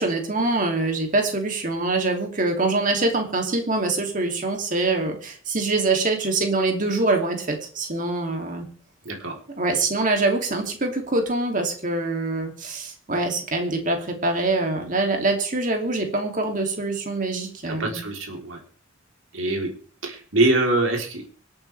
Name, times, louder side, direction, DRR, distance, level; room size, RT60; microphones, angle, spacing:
voice 1, 0.0-8.7 9.6-18.0, right 2 dB, 40° right, 3 dB, 2.9 m, -24 dB
voice 2, 9.1-9.4 17.7-18.6 19.3-19.7 20.0-21.2, right 2 dB, 80° right, 1 dB, 3.7 m, -24 dB
25.5 x 8.9 x 3.5 m, 0.43 s
head